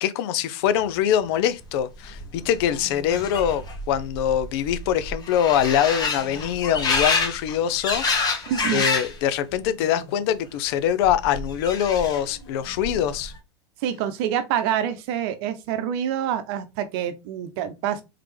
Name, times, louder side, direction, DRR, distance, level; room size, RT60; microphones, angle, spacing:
voice 1, 0.0-8.4 8.7-13.3, left 9 dB, 60° left, 0.6 m, -24 dB
sound 1, 1.6-1.7 1.9-9.2 9.5-10.1 11.0-12.4 12.7-13.3, left 4 dB, 30° left, 1.3 m, -28 dB
voice 2, 8.5-8.8 13.8-18.0, right 9 dB, 60° right, 0.8 m, -26 dB
3.8 x 3.4 x 3.2 m
hypercardioid pair, 115°, 14 cm